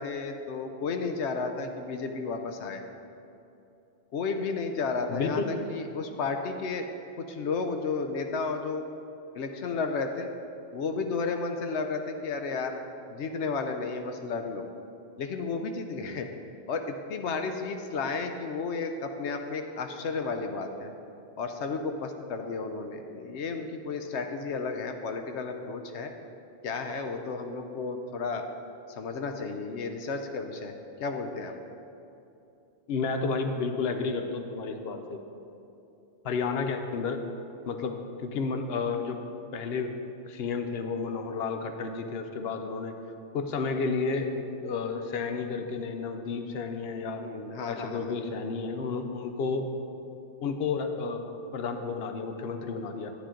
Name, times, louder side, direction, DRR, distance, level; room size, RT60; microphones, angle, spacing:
voice 1, 0.0-2.8 4.1-6.9 7.2-8.8 9.3-10.3 10.7-12.8 13.1-14.6 15.2-16.3 16.7-20.9 21.4-26.1 26.6-28.5 28.9-30.7 31.0-31.6 47.2-48.1, left 4 dB, 90° left, 5 dB, 1.0 m, -33 dB
voice 2, 5.1-5.5 32.9-35.2 36.2-37.2 37.7-39.2 39.5-39.9 40.2-42.9 43.3-47.2 47.7-49.7 50.4-51.3 51.5-53.1, left 4 dB, 65° left, 6 dB, 0.9 m, -31 dB
11.0 x 10.0 x 3.8 m, 2.8 s
omnidirectional pair, 1.1 m